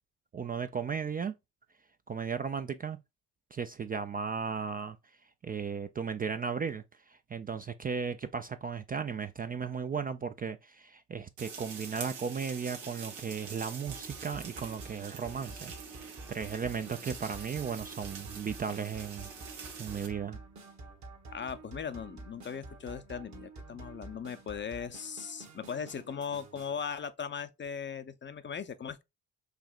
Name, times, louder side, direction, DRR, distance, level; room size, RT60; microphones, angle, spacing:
voice 1, 0.3-1.3 2.1-3.0 3.5-5.0 5.4-19.3 19.8-20.4, right 6 dB, 25° right, 0.4 m, -36 dB
sound 1, 11.4-20.1, right 5 dB, 90° right, 1.0 m, -45 dB
sound 2, 13.9-26.8, right 2 dB, 50° right, 1.3 m, -49 dB
voice 2, 21.3-29.0, left 7 dB, 30° left, 0.6 m, -38 dB
5.0 x 2.8 x 2.4 m
hypercardioid pair, 50°, 36 cm